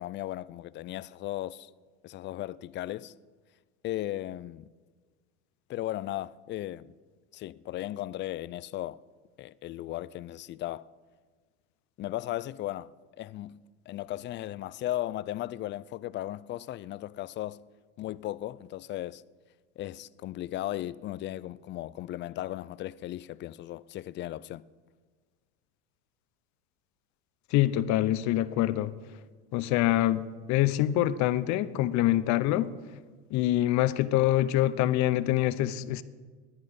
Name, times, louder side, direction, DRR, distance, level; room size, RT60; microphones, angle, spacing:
voice 1, 0.0-1.7 2.0-3.1 3.8-4.7 5.7-6.9 7.3-9.0 9.4-10.9 12.0-12.9 13.2-13.6 13.9-17.6 18.0-19.2 19.8-24.6, left 14 dB, 35° left, 0.4 m, -36 dB
voice 2, 27.5-28.9 29.5-32.7 33.3-36.0, left 14 dB, 55° left, 0.9 m, -25 dB
17.5 x 10.5 x 5.3 m
supercardioid pair, 105°, 34 cm